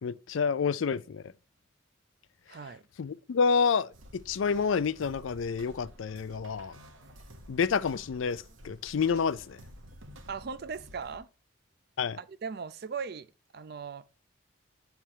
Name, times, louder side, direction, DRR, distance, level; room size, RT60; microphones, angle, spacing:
voice 1, 0.0-1.2 3.0-6.7 7.5-9.6 12.0-12.2, left 5 dB, 80° left, 0.4 m, -29 dB
voice 2, 2.5-2.8 10.3-11.3 12.2-13.3 13.5-14.0, right 5 dB, 50° right, 0.5 m, -38 dB
sound 1, 3.9-11.2, equal, 80° right, 1.0 m, -51 dB
8.6 x 3.4 x 4.5 m
head